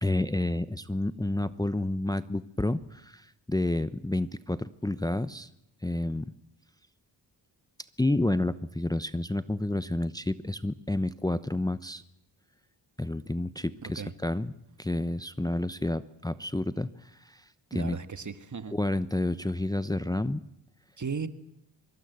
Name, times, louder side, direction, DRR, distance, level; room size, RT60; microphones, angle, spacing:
voice 1, 0.0-5.5 5.8-6.3 8.0-12.0 13.0-14.5 14.8-17.4 17.7-18.0 18.7-20.4, left 1 dB, 10° left, 14 dB, 0.9 m, -30 dB
voice 2, 13.8-14.1 17.7-18.8 21.0-21.3, right 5 dB, 40° right, 12 dB, 1.9 m, -36 dB
24.5 x 22.0 x 8.2 m, 0.77 s
cardioid pair, 70°, 43 cm